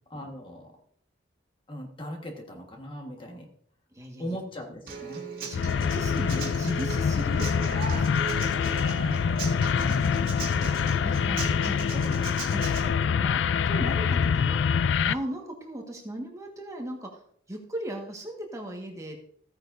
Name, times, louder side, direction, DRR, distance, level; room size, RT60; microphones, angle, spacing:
voice 1, 0.1-0.7 1.7-3.5 4.2-5.2 8.9-10.6, equal, 25° left, 2 dB, 1.5 m, -39 dB
voice 2, 3.9-4.4 5.5-8.1 11.0-12.0 12.5-14.6 15.0-17.2 17.5-19.3, right 1 dB, 15° right, 1 dB, 1.6 m, -38 dB
Human voice / Acoustic guitar, 4.9-12.8, right 4 dB, 50° right, 2.7 m, -38 dB
sound 1, 5.5-15.1, left 6 dB, 70° left, 0.3 m, -25 dB
15.0 x 9.4 x 2.7 m, 0.63 s
head